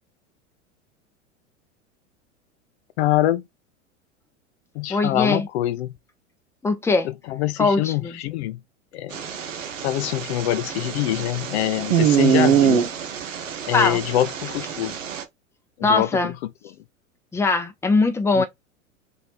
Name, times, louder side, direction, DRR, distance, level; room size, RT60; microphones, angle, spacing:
voice 1, 3.0-3.4 4.8-5.9 7.3-8.6 8.9-9.2 9.8-12.8 13.7-15.0 15.8-16.1 18.4-18.5, left 14 dB, 55° left, 0.5 m, -24 dB
voice 2, 4.9-5.5 6.6-7.1 7.6-8.2 13.7-14.0 15.8-16.3 17.3-18.4, left 3 dB, 5° left, 0.6 m, -21 dB
sound 1, 9.1-15.2, right 8 dB, 80° right, 0.9 m, -24 dB
3.2 x 2.7 x 4.4 m
figure-of-eight pair, 85°, 38 cm